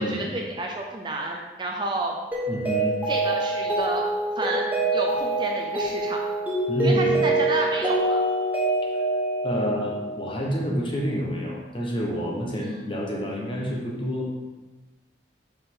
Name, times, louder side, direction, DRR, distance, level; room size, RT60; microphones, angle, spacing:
voice 1, 0.0-2.1 3.1-4.0 4.4-6.2 6.8-8.2 12.5-12.9, right 2 dB, 25° right, 0 dB, 0.6 m, -30 dB
Mallet percussion, 2.3-10.5, right 2 dB, 10° right, 1.2 m, -25 dB
voice 2, 2.5-3.0 6.7-7.2 8.9-9.0 9.4-14.4, equal, 30° left, -2 dB, 1.2 m, -28 dB
6.2 x 5.2 x 3.8 m, 1.2 s
head